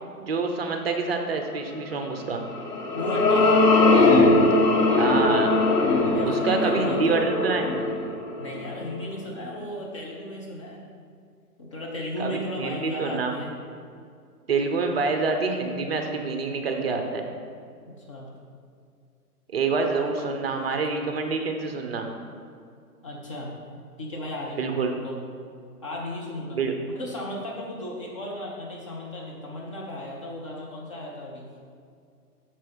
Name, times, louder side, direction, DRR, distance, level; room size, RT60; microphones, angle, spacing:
voice 1, 0.2-2.4 5.0-5.6 6.3-7.7 12.2-13.3 14.5-17.3 19.5-22.1 24.5-25.0 26.5-26.7, right 4 dB, 40° right, 4 dB, 0.7 m, -27 dB
sound 1, 2.4-8.9, left 2 dB, 75° left, 1.6 m, -20 dB
voice 2, 2.9-3.7 6.1-7.2 8.4-10.8 11.6-13.5 17.8-18.3 20.5-20.7 23.0-23.6 24.0-25.2 25.8-26.6 26.9-31.6, left 1 dB, 20° left, -3 dB, 0.6 m, -35 dB
6.7 x 5.5 x 5.2 m, 2.3 s
hypercardioid pair, 140°, 47 cm